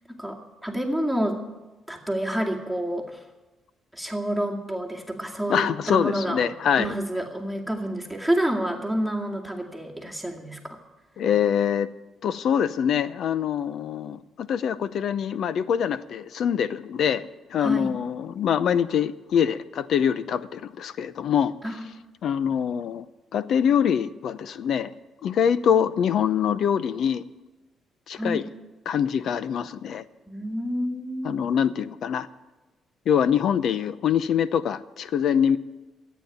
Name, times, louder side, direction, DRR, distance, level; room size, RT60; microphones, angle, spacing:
voice 1, 0.2-1.4 1.9-3.2 3.9-6.5 6.8-10.8 17.6-17.9 21.6-21.9 28.2-28.4 30.3-31.4, right 1 dB, ahead, 1 dB, 2.2 m, -28 dB
voice 2, 5.5-6.9 11.2-11.9 12.2-21.5 22.2-23.0 23.3-24.9 25.2-27.2 28.1-28.4 28.9-30.0 31.2-32.3 33.1-35.6, left 8 dB, 70° left, 15 dB, 0.7 m, -24 dB
14.0 x 9.1 x 9.2 m, 1.1 s
cardioid pair, 90°, 0 cm